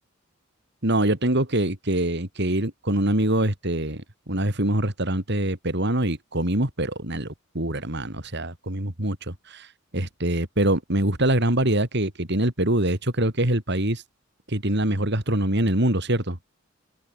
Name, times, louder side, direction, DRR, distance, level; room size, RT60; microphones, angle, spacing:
voice 1, 0.8-9.7 9.9-14.0 14.5-16.4, right 1 dB, 55° right, 4.4 m, -24 dB
open air
head